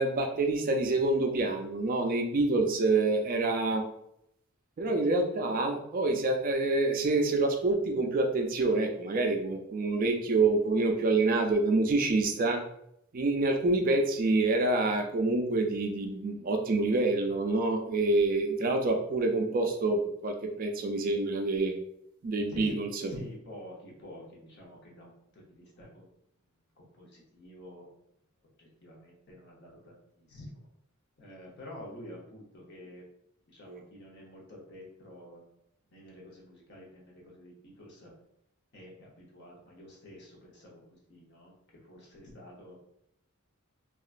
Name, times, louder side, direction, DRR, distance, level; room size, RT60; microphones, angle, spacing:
voice 1, 0.0-3.8 4.8-12.6 13.1-21.7 22.2-23.1 33.7-33.8, right 2 dB, 40° right, 3 dB, 0.4 m, -27 dB
voice 2, 22.5-26.0 26.8-27.9 28.6-30.6 31.2-33.0 33.5-35.4 35.9-38.1 38.7-40.8 41.1-41.5 41.9-42.8, left 1 dB, 55° left, -3 dB, 0.9 m, -48 dB
2.8 x 2.4 x 2.4 m, 0.75 s
head